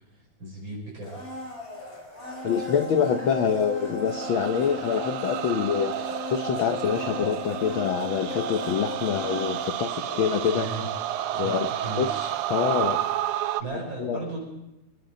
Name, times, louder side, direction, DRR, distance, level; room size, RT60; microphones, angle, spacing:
voice 1, 0.4-1.2 10.5-10.9 11.3-12.1 13.6-14.4, right 2 dB, 40° right, -2 dB, 6.3 m, -35 dB
Domestic sounds home sounds, 1.0-11.0 11.3-11.4, left 1 dB, 20° left, 5.7 m, -37 dB
voice 2, 2.4-10.7 11.3-11.7 12.0-13.0 14.0-14.2, left 7 dB, 85° left, 6 dB, 1.1 m, -26 dB
sound 1, 4.1-13.6, right 12 dB, 85° right, 2.1 m, -31 dB
26.5 x 10.5 x 5.3 m, 0.91 s
omnidirectional pair, 3.5 m